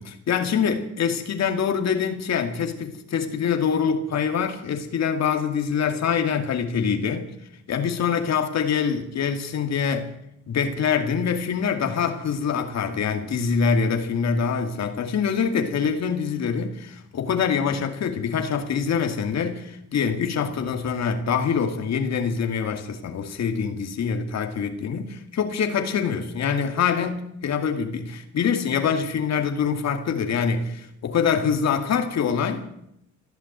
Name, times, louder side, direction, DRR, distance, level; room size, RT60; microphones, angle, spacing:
voice 1, 0.0-7.3 7.7-10.1 10.5-32.7, left 6 dB, 60° left, 2.4 m, -25 dB
15.0 x 11.5 x 8.1 m
cardioid pair, 90°, 30 cm